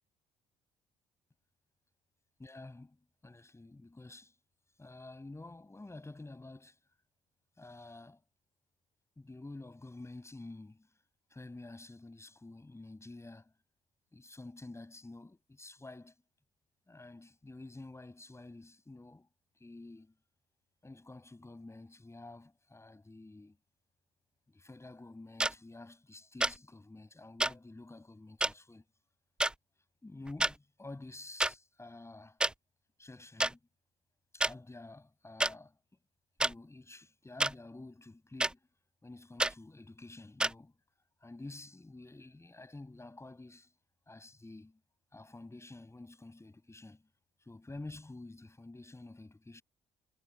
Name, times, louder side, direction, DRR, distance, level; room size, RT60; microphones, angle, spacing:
voice 1, 2.4-3.0 3.2-4.3 4.8-6.8 7.6-8.2 9.2-10.9 11.3-13.5 14.1-16.1 16.9-19.3 19.6-20.1 20.8-23.6 24.5-28.8 30.0-32.4 33.0-33.6 34.3-35.8 36.4-38.6 39.0-40.7 41.2-43.7 44.1-44.8 45.1-47.1 47.4-49.6, left 2 dB, 15° left, 6.5 m, -49 dB
sound 1, 25.4-25.5 26.4-26.6 27.4-27.5 28.4-28.5 29.4-29.5 30.3-30.5 31.4-31.5 32.4-32.5 33.4-33.5 34.4-34.5 35.4-35.5 36.4-36.5 37.4-37.5 38.4-38.5 39.4-39.5 40.4-40.5, right 1 dB, 5° right, 0.4 m, -29 dB
figure-of-eight pair, 50°, 18 cm